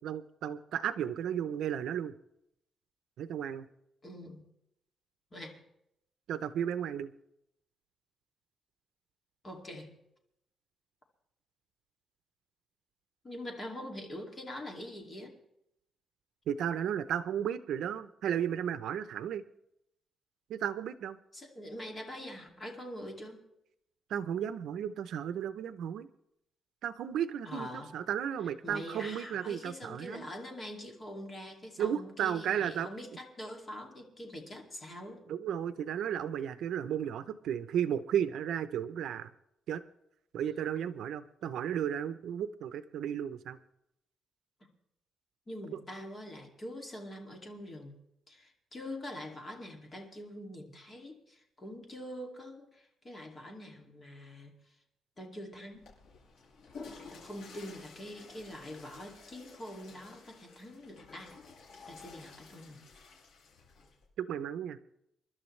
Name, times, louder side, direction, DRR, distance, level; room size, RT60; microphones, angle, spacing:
voice 1, 0.0-2.1 3.2-3.7 6.3-7.1 16.5-19.4 20.5-21.2 24.1-26.1 26.8-30.3 31.8-32.9 35.3-39.3 39.7-39.8 40.3-43.6 64.2-64.8, right 9 dB, 70° right, 12 dB, 0.7 m, -34 dB
voice 2, 4.0-4.5 5.3-5.6 9.4-10.0 13.2-15.3 21.3-23.4 27.5-28.0 28.6-35.2 45.5-48.0 48.3-54.5 55.2-55.9 57.1-61.4 61.9-62.8, left 1 dB, 25° left, 1 dB, 2.4 m, -44 dB
Water / Toilet flush, 55.7-64.1, left 4 dB, 75° left, 7.4 m, -52 dB
28.5 x 12.0 x 3.2 m, 0.80 s
cardioid pair, 170°, 0 cm